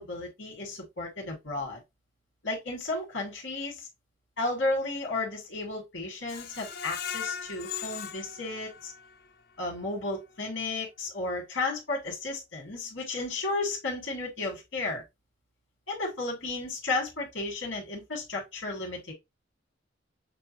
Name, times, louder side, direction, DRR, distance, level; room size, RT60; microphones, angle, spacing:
voice 1, 0.0-1.8 2.4-3.9 4.4-8.9 9.6-15.0 15.9-19.1, left 2 dB, 80° left, 2.3 m, -33 dB
Screech, 6.3-9.3 9.7-9.8 10.2-10.3, left 8 dB, 55° left, 0.6 m, -38 dB
6.8 x 2.4 x 3.1 m
head